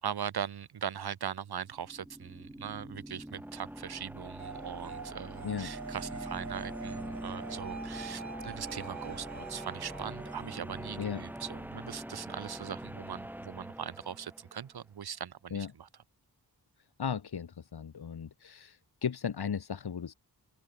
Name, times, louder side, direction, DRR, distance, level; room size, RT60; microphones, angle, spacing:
voice 1, 0.0-15.9, right 8 dB, 80° right, 1.5 m, -40 dB
sound 1, 1.7-14.6, right 1 dB, 5° right, 1.6 m, -43 dB
sound 2, 4.4-11.9, right 5 dB, 50° right, 6.3 m, -46 dB
voice 2, 17.0-20.1, left 7 dB, 90° left, 4.3 m, -36 dB
open air
wide cardioid pair, 150°, 37 cm